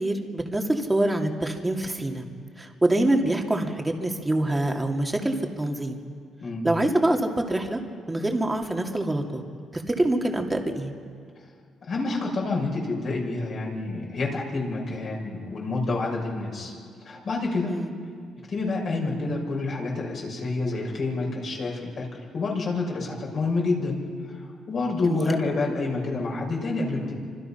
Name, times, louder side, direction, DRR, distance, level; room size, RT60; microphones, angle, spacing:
voice 1, 0.0-2.2 2.6-6.0 6.6-7.8 8.1-9.4 9.7-10.9 17.7-17.9 25.0-25.4, right 1 dB, 15° right, 2 dB, 2.7 m, -25 dB
voice 2, 11.9-16.7 17.0-17.7 18.5-24.0 24.3-27.1, left 3 dB, 55° left, -1 dB, 6.2 m, -28 dB
28.0 x 26.0 x 5.9 m, 2.1 s
cardioid pair, 90°, 0 cm